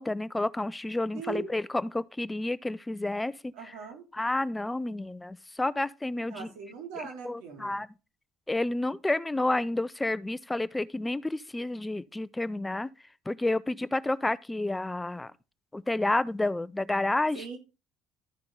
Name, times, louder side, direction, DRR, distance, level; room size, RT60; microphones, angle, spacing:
voice 1, 0.0-3.7 4.1-6.5 7.0-7.9 8.5-12.9 13.3-15.3 15.7-17.4, left 2 dB, 15° left, 0.5 m, -30 dB
voice 2, 1.1-1.5 3.5-4.0 6.3-7.7 17.3-17.6, right 6 dB, 75° right, 2.8 m, -40 dB
13.0 x 5.8 x 3.8 m
supercardioid pair, 75°, 0 cm